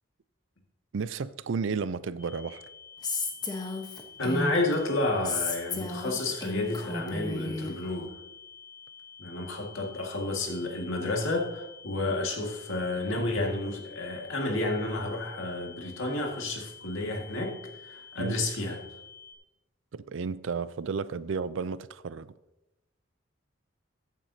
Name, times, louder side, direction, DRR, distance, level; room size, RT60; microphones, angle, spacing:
voice 1, 0.9-2.6 18.2-18.4 19.9-22.3, right 5 dB, 70° right, 0.4 m, -32 dB
sound 1, 2.2-19.3, left 7 dB, 10° right, 1.9 m, -50 dB
Female speech woman speaking, 3.0-4.7 5.2-7.7, left 3 dB, 20° left, 1.0 m, -33 dB
voice 2, 4.2-8.1 9.2-17.6 17.8-18.8, left 2 dB, 75° left, 1.9 m, -30 dB
14.5 x 9.0 x 2.8 m
head